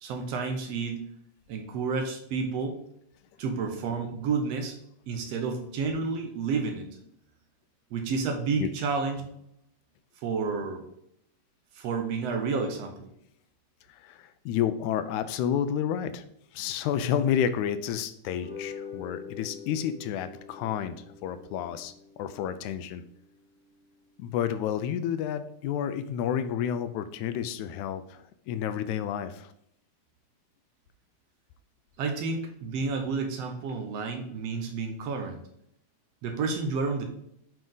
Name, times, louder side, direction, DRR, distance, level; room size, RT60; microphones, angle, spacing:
voice 1, 0.0-1.1 1.5-2.8 3.4-4.8 5.1-6.9 7.9-9.3 10.2-10.8 11.8-13.1 32.0-35.4 36.2-37.0, right 4 dB, 70° right, 4 dB, 1.8 m, -30 dB
voice 2, 13.9-16.3 16.5-21.9 22.2-23.0 24.2-29.5, left 9 dB, 90° left, 11 dB, 2.0 m, -30 dB
sound 1, 18.2-24.8, left 6 dB, 30° right, 1.2 m, -46 dB
7.6 x 4.6 x 3.8 m, 0.74 s
omnidirectional pair, 3.3 m